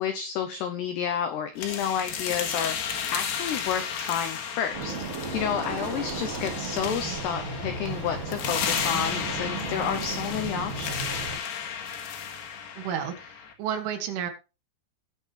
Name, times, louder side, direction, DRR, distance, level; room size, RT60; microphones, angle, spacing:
voice 1, 0.0-2.8 3.1-4.9 5.3-10.9, left 8 dB, 85° left, 8 dB, 2.3 m, -30 dB
sound 1, 1.6-13.5, left 7 dB, 65° left, 3.2 m, -33 dB
sound 2, 4.7-11.4, right 3 dB, 30° right, 3.7 m, -34 dB
voice 2, 12.8-14.3, right 8 dB, 70° right, 5 dB, 3.8 m, -31 dB
18.0 x 6.4 x 3.4 m, 0.30 s
omnidirectional pair, 6.0 m